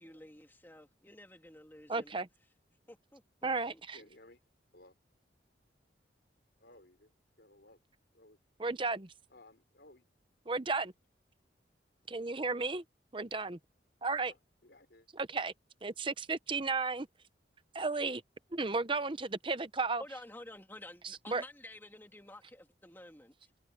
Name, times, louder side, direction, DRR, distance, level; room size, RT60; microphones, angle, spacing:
voice 1, 0.0-2.1 2.9-4.1 20.0-23.3, left 1 dB, 10° left, 2.9 m, -51 dB
voice 2, 1.9-2.3 3.4-4.0 8.6-9.1 10.5-10.9 12.1-12.8 13.1-13.6 14.0-14.3 15.1-15.5 15.8-17.1 17.7-18.2 18.5-20.0 21.0-21.4, right 3 dB, 25° right, 0.8 m, -34 dB
voice 3, 3.9-4.4 4.7-5.0 6.6-7.1 7.4-7.8 8.1-8.4 9.3-10.0 14.3-15.1, left 2 dB, 65° left, 4.4 m, -59 dB
head